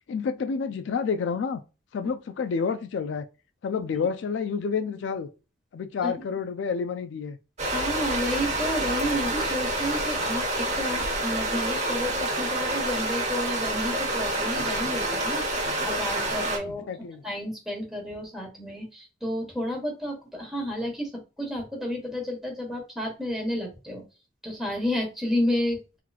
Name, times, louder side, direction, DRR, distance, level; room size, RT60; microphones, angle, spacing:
voice 1, 0.1-1.6 1.9-3.3 3.6-5.3 5.7-7.4 16.7-17.2, left 5 dB, 65° left, 0.3 m, -29 dB
sound 1, 7.6-16.6, right 1 dB, 35° right, 1.0 m, -28 dB
voice 2, 7.7-24.0 24.4-26.0, left 1 dB, ahead, 1.3 m, -31 dB
3.8 x 3.0 x 2.3 m
head